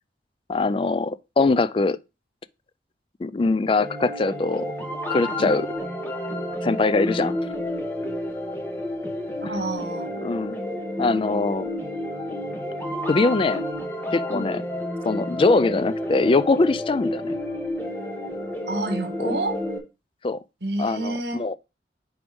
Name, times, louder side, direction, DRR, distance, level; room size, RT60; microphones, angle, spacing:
voice 1, 0.5-2.0 3.2-4.7 5.1-5.7 6.6-7.4 10.2-10.6 11.0-11.7 13.1-13.6 14.1-14.6 15.0-17.3 19.2-19.3 20.2-20.4 20.8-21.6, left 3 dB, 30° left, 0.3 m, -22 dB
sound 1, 3.8-19.8, left 1 dB, 10° left, 1.2 m, -30 dB
voice 2, 9.4-10.1 14.3-14.5 18.7-19.6 20.6-21.4, right 2 dB, 65° right, 1.5 m, -29 dB
5.3 x 4.7 x 5.1 m
head